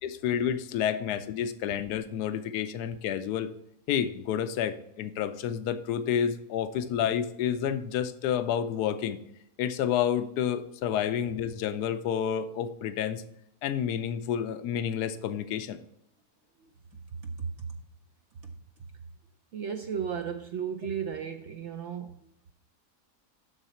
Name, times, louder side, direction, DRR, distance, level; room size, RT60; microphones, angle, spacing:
voice 1, 0.0-3.5 3.9-9.2 9.6-13.2 13.6-15.8, left 9 dB, 80° left, 1.2 m, -29 dB
voice 2, 17.2-17.7 19.5-22.2, right 7 dB, 65° right, 0.7 m, -34 dB
12.0 x 4.0 x 4.2 m
omnidirectional pair, 1.7 m